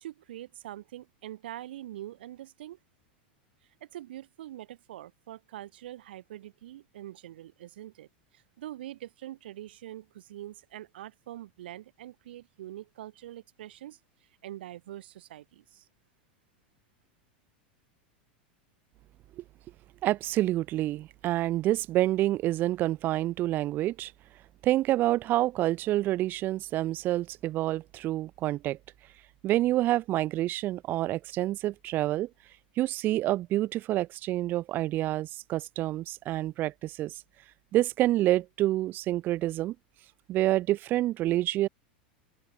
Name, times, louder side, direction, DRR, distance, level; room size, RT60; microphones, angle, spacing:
voice 1, 0.0-2.8 3.8-8.1 8.3-14.0 14.4-15.9, right 13 dB, 80° right, 0.8 m, -44 dB
voice 2, 20.0-24.1 24.6-28.8 29.4-32.3 32.8-37.1 37.7-39.8 40.3-41.7, right 15 dB, 40° right, 0.4 m, -27 dB
open air
hypercardioid pair, 120°, 5 cm